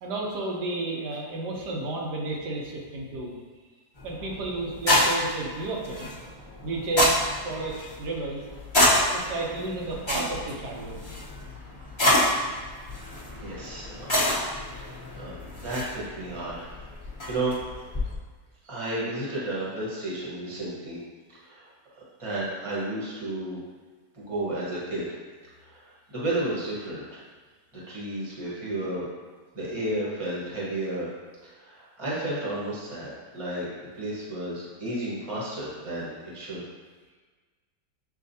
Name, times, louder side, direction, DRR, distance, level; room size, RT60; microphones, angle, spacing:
voice 1, 0.0-3.3 4.0-6.1 6.6-7.1 7.4-8.4 9.1-11.1, right 3 dB, 90° right, -2 dB, 1.4 m, -32 dB
sound 1, 4.0-18.1, left 1 dB, 20° left, 0.8 m, -28 dB
voice 2, 13.4-14.1 14.8-14.9 15.1-16.7 17.3-17.5 18.6-21.0 21.4-21.6 22.2-23.6 24.1-25.0 25.6-27.2 27.9-29.0 29.5-31.1 31.6-33.7 33.9-36.6, right 1 dB, 20° right, -7 dB, 1.1 m, -32 dB
7.1 x 2.5 x 2.7 m, 1.4 s
omnidirectional pair, 1.7 m